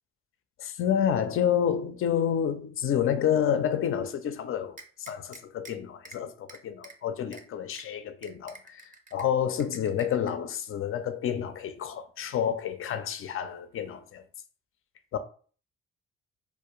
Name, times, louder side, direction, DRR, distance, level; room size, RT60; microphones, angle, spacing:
voice 1, 0.6-14.2 15.1-15.2, left 9 dB, 45° left, 0.4 m, -29 dB
sound 1, 4.8-5.7 6.0-6.2 6.5-6.9 7.3-7.4 7.8-7.9 8.2-9.2 9.6-10.3, right 3 dB, 25° right, 0.5 m, -47 dB
2.3 x 2.1 x 3.0 m
hypercardioid pair, 45°, 30 cm